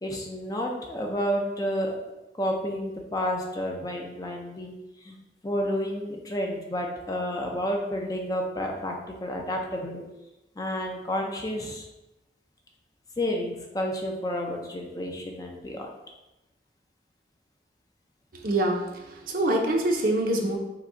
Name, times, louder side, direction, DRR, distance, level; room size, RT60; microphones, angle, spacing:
voice 1, 0.0-2.0 2.4-4.7 5.0-5.2 5.4-8.9 9.2-10.0 10.6-11.8 13.2-15.9, equal, 20° left, 0 dB, 0.5 m, -30 dB
voice 2, 18.3-20.6, right 1 dB, 50° right, 1 dB, 0.7 m, -25 dB
5.9 x 2.3 x 3.7 m, 0.99 s
head